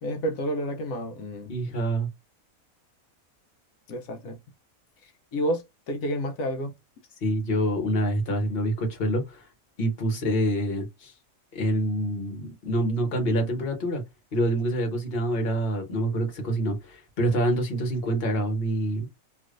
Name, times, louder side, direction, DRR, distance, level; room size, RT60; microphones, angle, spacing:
voice 1, 0.0-1.5 3.9-4.4 5.3-6.7 10.1-10.2, equal, 85° left, 1.2 m, -30 dB
voice 2, 1.5-2.1 7.2-9.5 9.8-11.1 11.5-14.0 14.3-19.1, right 1 dB, 50° left, 1.3 m, -26 dB
3.2 x 2.8 x 2.5 m
omnidirectional pair, 1.4 m